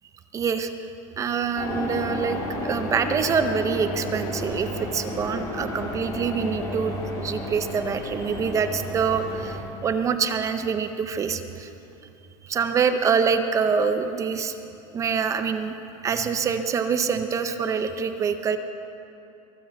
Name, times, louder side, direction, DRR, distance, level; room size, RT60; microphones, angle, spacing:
voice 1, 0.3-0.7 1.2-11.7 12.4-14.5 14.9-15.7 16.0-18.6, right 6 dB, 20° right, 8 dB, 0.6 m, -25 dB
sound 1, 1.6-9.6, left 1 dB, 20° left, 2.7 m, -32 dB
23.0 x 7.7 x 8.0 m, 2.8 s
supercardioid pair, 160°, 17 cm